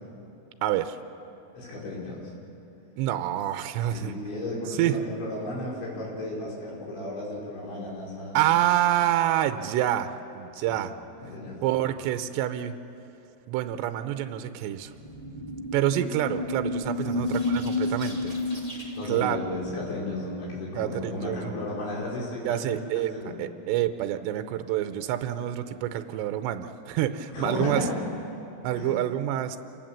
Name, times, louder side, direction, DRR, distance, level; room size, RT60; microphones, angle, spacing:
voice 1, 0.6-1.0 3.0-4.2 4.8-5.0 8.3-10.9 11.6-12.7 13.5-14.9 15.7-18.4 19.1-19.4 20.7-21.6 22.4-27.9 28.6-29.6, right 12 dB, 85° right, 9 dB, 2.9 m, -27 dB
voice 2, 1.5-2.3 3.8-8.4 10.5-10.7 11.2-11.6 17.0-17.2 19.0-23.4 27.3-28.0 28.7-29.0, left 2 dB, 85° left, -4 dB, 7.4 m, -34 dB
sound 1, 14.8-20.2, left 2 dB, 15° left, 1.7 m, -31 dB
27.5 x 18.0 x 7.5 m, 2.9 s
omnidirectional pair, 5.1 m